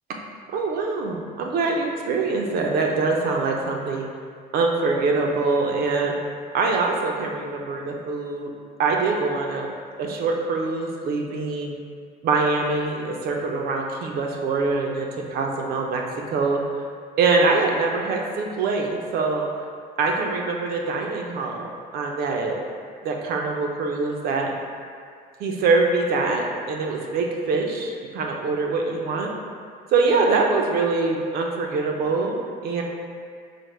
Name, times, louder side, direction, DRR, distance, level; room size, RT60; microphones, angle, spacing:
voice 1, 0.5-4.0 4.5-6.1 6.5-8.5 8.8-9.7 10.0-11.7 12.2-16.0 16.3-16.6 17.2-19.4 20.0-22.6 23.0-24.5 25.4-29.3 29.9-32.8, right 3 dB, 65° right, 1 dB, 0.5 m, -24 dB
5.0 x 2.1 x 3.1 m, 2.1 s
cardioid pair, 110°, 17 cm